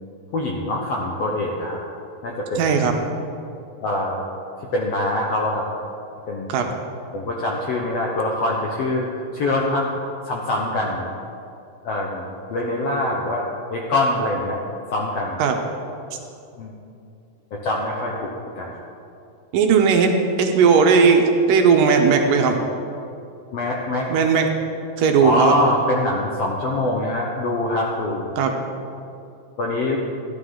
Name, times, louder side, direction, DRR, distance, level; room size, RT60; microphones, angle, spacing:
voice 1, 0.3-1.8 2.2-2.8 3.8-4.2 4.7-5.7 6.3-6.5 7.1-9.9 10.3-11.1 11.8-13.4 13.7-14.6 14.9-15.4 16.6-16.7 17.5-18.3 18.6-18.7 23.5-24.1 25.2-28.3 29.6-30.0, left 1 dB, 70° left, -2 dB, 1.5 m, -24 dB
voice 2, 2.6-3.0 6.5-6.7 15.4-15.6 19.5-22.6 24.1-24.5 25.0-25.5 28.4-28.5, right 5 dB, 75° right, 3 dB, 2.3 m, -17 dB
14.0 x 11.0 x 3.8 m, 2.6 s
omnidirectional pair, 4.1 m